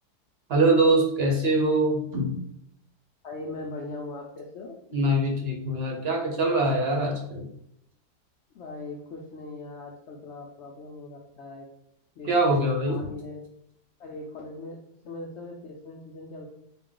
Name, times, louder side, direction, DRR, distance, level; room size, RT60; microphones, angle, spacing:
voice 1, 0.5-2.4 4.9-7.5 12.3-13.0, right 2 dB, 55° right, 0 dB, 0.7 m, -23 dB
voice 2, 3.2-4.8 8.5-11.7 12.2-12.6 12.9-13.4 14.0-16.5, left 2 dB, 85° left, -1 dB, 0.6 m, -40 dB
4.3 x 2.3 x 3.7 m, 0.76 s
omnidirectional pair, 1.7 m